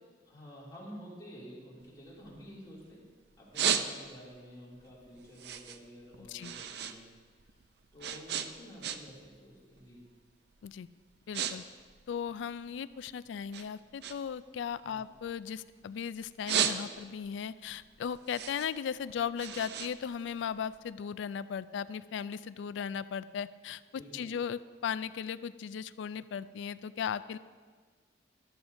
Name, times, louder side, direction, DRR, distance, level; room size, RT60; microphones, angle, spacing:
voice 1, 0.2-3.1 3.4-7.1 7.4-7.6 7.9-10.0 14.9-15.0 23.9-24.3, equal, 20° left, -7 dB, 2.6 m, -50 dB
sound 1, 1.8-2.9 3.3-4.4 4.8-7.0 7.3-9.3 9.6-9.9 10.5-10.7 11.0-11.5 11.8-13.0 13.5-15.8 16.2-17.3 17.7-20.8, right 8 dB, 60° right, 0.5 m, -35 dB
voice 2, 6.2-6.5 10.6-10.9 11.3-11.6 12.1-23.8 24.1-27.4, left 7 dB, 80° left, 16 dB, 0.3 m, -37 dB
12.5 x 12.0 x 2.6 m, 1.5 s
head